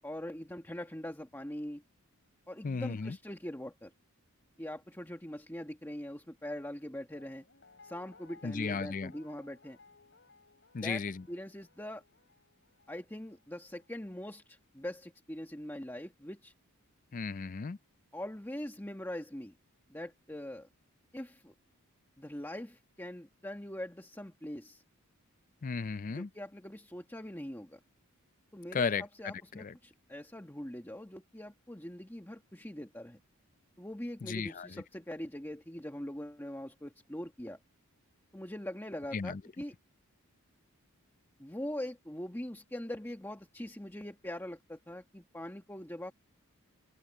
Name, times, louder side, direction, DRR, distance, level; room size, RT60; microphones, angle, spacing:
voice 1, 0.0-1.8 2.5-3.9 4.6-7.4 7.8-9.8 10.8-12.0 12.9-16.5 18.1-19.5 19.9-20.7 21.1-21.5 22.2-24.8 26.1-27.8 28.5-33.2 33.8-37.6 38.3-39.7 41.4-46.1, left 1 dB, 10° left, 1.8 m, -42 dB
voice 2, 2.6-3.2 8.4-9.1 10.7-11.2 17.1-17.8 25.6-26.3 28.7-29.7 34.2-34.7 39.1-39.4, left 5 dB, 35° left, 0.4 m, -35 dB
Guitar, 7.1-14.1 14.5-14.6, left 4 dB, 55° left, 6.0 m, -60 dB
open air
head